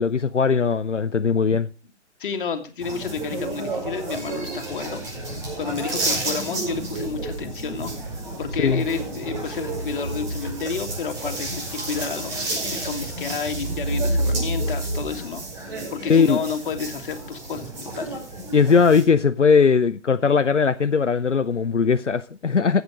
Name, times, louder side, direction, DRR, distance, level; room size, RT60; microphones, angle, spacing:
voice 1, 0.0-1.7 8.6-8.8 16.1-16.4 18.5-22.8, left 5 dB, 90° left, 0.6 m, -19 dB
voice 2, 2.2-5.0 5.6-18.2, left 6 dB, 45° left, 1.9 m, -31 dB
sound 1, 2.8-19.0, right 2 dB, 40° right, 5.8 m, -30 dB
13.5 x 8.0 x 5.0 m
figure-of-eight pair, 125°, 35 cm